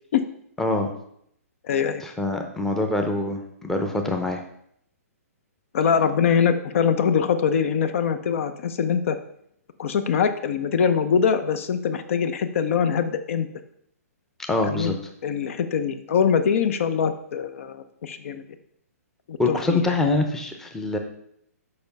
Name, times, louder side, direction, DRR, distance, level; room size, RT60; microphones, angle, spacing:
voice 1, 0.6-0.9 2.0-4.4 14.5-14.9 19.4-21.0, left 2 dB, 5° left, 3 dB, 0.7 m, -24 dB
voice 2, 1.6-2.0 5.7-9.2 9.8-13.5 14.6-14.9 15.2-18.4 19.3-20.0, left 7 dB, 55° left, 10 dB, 0.6 m, -23 dB
6.9 x 5.3 x 5.3 m, 0.70 s
hypercardioid pair, 150°, 8 cm